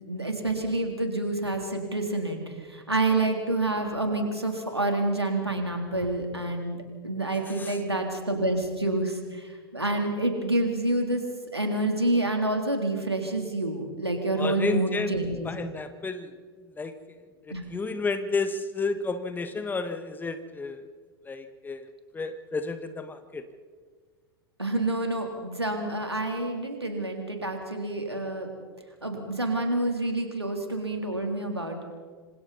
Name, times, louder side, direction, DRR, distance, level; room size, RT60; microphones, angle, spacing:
voice 1, 0.1-2.4 2.7-11.2 11.5-15.5 17.5-17.6 24.6-28.5 29.0-31.8, right 2 dB, 90° right, 3 dB, 3.4 m, -28 dB
voice 2, 14.3-15.2 15.4-16.3 16.8-16.9 17.5-20.8 21.2-23.4, left 3 dB, 15° left, 9 dB, 1.6 m, -31 dB
26.5 x 26.5 x 4.2 m, 1.6 s
figure-of-eight pair, 90°, 13 cm